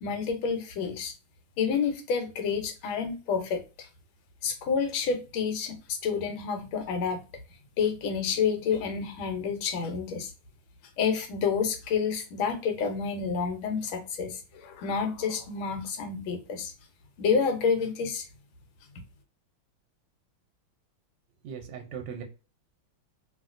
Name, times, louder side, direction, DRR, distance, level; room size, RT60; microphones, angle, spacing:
voice 1, 0.0-1.1 1.6-3.9 4.4-7.2 7.8-10.3 11.0-16.7 17.2-18.3, left 6 dB, 85° left, 5 dB, 1.5 m, -29 dB
voice 2, 21.4-22.2, right 7 dB, 75° right, 3 dB, 1.1 m, -38 dB
2.8 x 2.8 x 2.4 m, 0.32 s
omnidirectional pair, 2.2 m